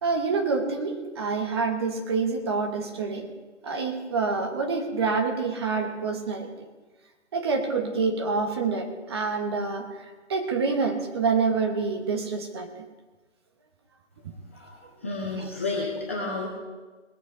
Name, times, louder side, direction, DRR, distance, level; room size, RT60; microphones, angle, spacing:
voice 1, 0.0-3.3 3.6-6.5 7.3-9.9 10.3-12.7 15.2-15.5, right 4 dB, 20° right, 3 dB, 1.2 m, -27 dB
voice 2, 14.5-16.5, left 3 dB, 10° left, -4 dB, 0.7 m, -31 dB
20.0 x 8.1 x 4.9 m, 1.2 s
figure-of-eight pair, 155°, 36 cm